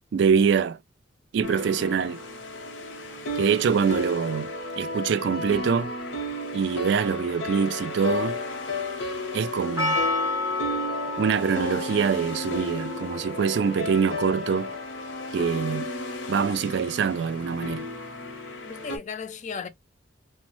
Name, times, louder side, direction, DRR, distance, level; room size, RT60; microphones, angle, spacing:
voice 1, 0.1-0.8 1.3-2.2 3.4-5.9 6.5-8.4 9.3-10.0 11.2-14.7 15.3-15.9 16.3-17.9, right 6 dB, 65° right, 0.3 m, -24 dB
sound 1, 1.4-19.0, left 2 dB, 75° left, 0.8 m, -33 dB
Percussion, 9.8-15.0, left 2 dB, 15° right, 0.6 m, -31 dB
voice 2, 18.6-19.7, left 5 dB, 40° left, 0.4 m, -36 dB
3.0 x 2.0 x 3.0 m
head